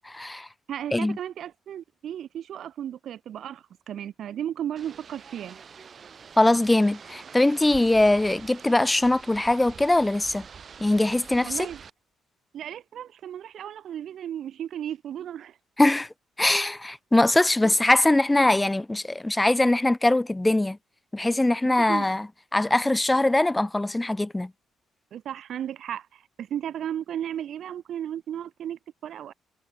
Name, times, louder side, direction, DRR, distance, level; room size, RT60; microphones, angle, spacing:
voice 1, 0.1-0.5 0.9-1.2 6.4-10.4 10.8-11.7 15.8-16.1 16.4-20.8 21.1-22.3 22.5-24.5, left 2 dB, 10° left, 0.6 m, -22 dB
voice 2, 0.7-5.6 11.4-11.8 12.5-15.6 17.6-17.8 21.6-22.1 25.1-29.3, right 10 dB, 70° right, 8.0 m, -35 dB
sound 1, 4.8-11.9, right 6 dB, 45° right, 4.9 m, -46 dB
cardioid pair, 90°, 0 cm